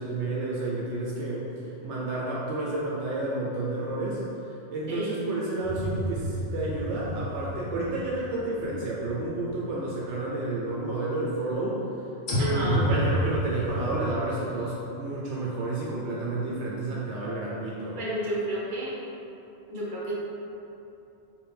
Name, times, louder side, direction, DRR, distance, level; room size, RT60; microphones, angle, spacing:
voice 1, 0.0-4.2 4.7-11.8 12.3-18.0, right 2 dB, 75° right, -5 dB, 0.9 m, -30 dB
voice 2, 4.9-5.2 12.4-12.9 18.0-18.9 19.7-20.1, right 1 dB, 45° right, -6 dB, 1.1 m, -31 dB
sound 1, 5.6-9.7 10.0-10.1 12.3-14.0, equal, 50° left, 0.8 m, -30 dB
4.8 x 2.7 x 3.3 m, 2.9 s
omnidirectional pair, 1.2 m